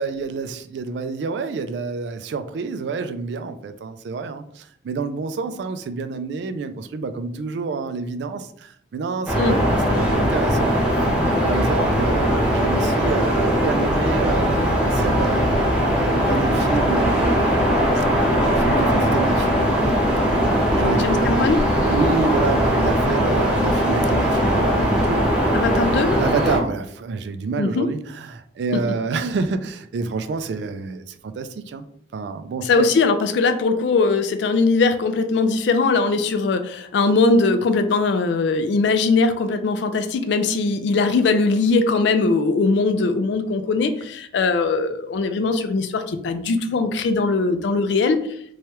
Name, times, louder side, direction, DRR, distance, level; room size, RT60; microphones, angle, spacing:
voice 1, 0.0-10.7 11.2-15.5 15.8-18.0 18.6-19.5 20.7-21.3 21.9-25.3 26.2-31.9 32.1-32.9, right 4 dB, 75° right, 10 dB, 0.3 m, -28 dB
sound 1, 9.3-26.6, equal, 5° right, 0.8 m, -20 dB
voice 2, 20.9-21.6 25.5-26.1 27.6-27.9 32.6-48.2, left 3 dB, 75° left, 9 dB, 0.3 m, -20 dB
3.1 x 2.2 x 2.9 m, 0.68 s
head